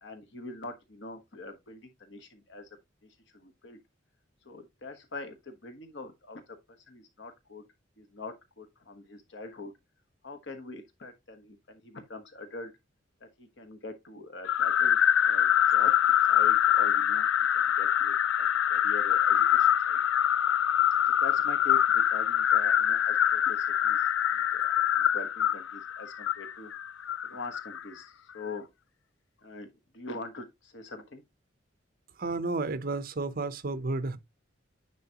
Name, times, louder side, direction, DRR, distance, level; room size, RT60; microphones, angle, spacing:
voice 1, 0.0-2.7 3.3-3.8 4.4-6.6 6.9-7.6 8.0-9.7 10.2-12.7 13.2-15.9 16.3-17.3 17.5-20.0 21.2-24.0 24.3-26.7 27.3-28.7 29.4-29.7 29.9-31.2, left 3 dB, 65° left, 1.2 m, -43 dB
sound 1, 14.5-27.8, left 10 dB, 80° left, 0.4 m, -24 dB
voice 2, 32.2-34.2, right 3 dB, 50° right, 0.7 m, -32 dB
9.6 x 3.9 x 2.9 m
head